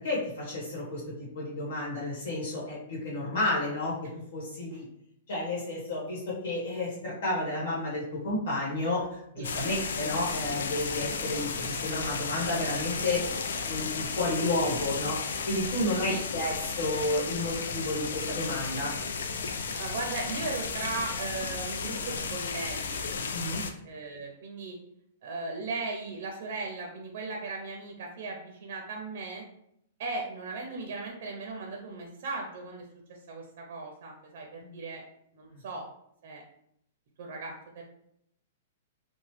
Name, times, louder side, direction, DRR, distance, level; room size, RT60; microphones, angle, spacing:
voice 1, 0.0-4.8 5.3-13.2 13.6-18.9 23.3-23.6 34.6-34.8 35.5-35.6, left 2 dB, 65° left, -5 dB, 1.3 m, -31 dB
sound 1, 9.4-23.7, left 5 dB, 85° left, 0.3 m, -34 dB
voice 2, 19.8-23.0 23.8-24.8 25.2-29.4 30.0-32.9 33.3-35.0 35.3-35.9 36.2-36.4 37.2-37.8, right 3 dB, 55° right, 0 dB, 0.5 m, -37 dB
3.0 x 2.0 x 3.2 m, 0.74 s
hypercardioid pair, 160°, 0 cm